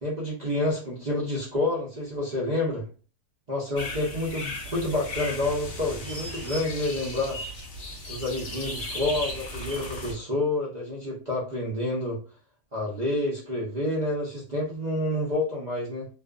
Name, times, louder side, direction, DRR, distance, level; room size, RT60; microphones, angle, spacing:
voice 1, 0.0-2.8 3.5-7.4 8.1-12.2 12.7-16.1, left 1 dB, 60° right, -5 dB, 0.4 m, -28 dB
sound 1, 3.8-10.1, left 1 dB, 50° left, 0.8 m, -36 dB
2.5 x 2.3 x 2.3 m, 0.36 s
omnidirectional pair, 1.7 m